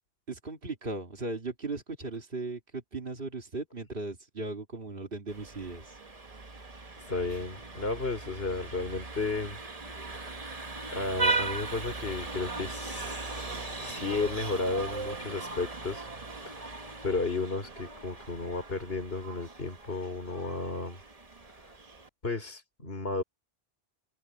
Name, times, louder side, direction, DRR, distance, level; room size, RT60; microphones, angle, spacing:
voice 1, 0.3-6.0, right 3 dB, 60° right, 2.8 m, -37 dB
Vehicle horn car horn honking, 5.3-22.1, right 3 dB, 35° right, 1.5 m, -38 dB
voice 2, 7.0-9.6 10.1-10.5 10.9-16.1 16.4-16.7 17.0-21.0 21.5-21.7 22.2-23.2, left 3 dB, 70° left, 3.9 m, -33 dB
omnidirectional pair, 1.0 m